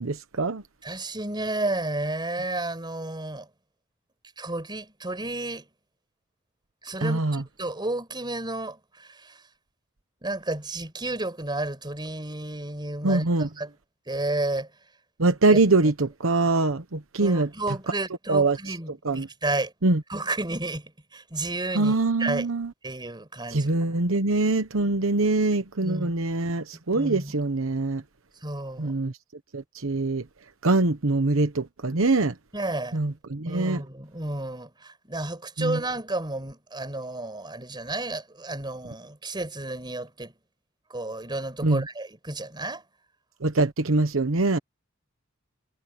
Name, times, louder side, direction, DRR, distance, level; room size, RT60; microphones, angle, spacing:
voice 1, 0.0-0.6 7.0-7.4 13.0-13.5 15.2-17.5 18.3-18.6 19.0-19.3 19.8-20.0 21.7-22.7 23.5-28.0 28.8-29.1 29.5-30.2 30.6-32.3 32.9-33.8 35.6-35.8 41.6-41.8 43.4-44.6, right 2 dB, 75° right, 1.1 m, -23 dB
voice 2, 0.8-3.5 4.4-5.7 6.8-9.4 10.2-13.7 14.1-14.7 15.5-15.6 17.2-19.7 20.1-22.5 22.8-24.0 25.8-26.2 26.9-27.4 28.4-28.9 32.5-33.0 33.5-40.3 40.9-42.8, right 2 dB, 20° right, 5.6 m, -32 dB
head